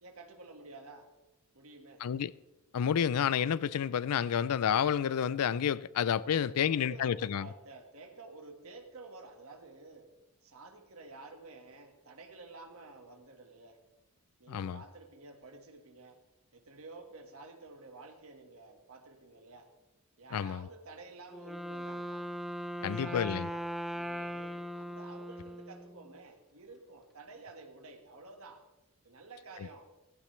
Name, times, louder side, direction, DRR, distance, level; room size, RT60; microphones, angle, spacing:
voice 1, 0.0-1.1 1.5-2.1 6.2-10.1 10.4-13.8 14.4-16.2 16.5-19.7 20.2-22.2 22.8-28.7 29.0-29.9, right 3 dB, 70° right, 1.7 m, -51 dB
voice 2, 2.0-2.3 2.7-7.5 14.5-14.8 20.3-20.7 22.8-23.5, left 8 dB, 90° left, 0.4 m, -30 dB
Wind instrument woodwind instrument, 21.3-26.2, equal, ahead, 0.5 m, -39 dB
16.5 x 15.0 x 3.2 m
head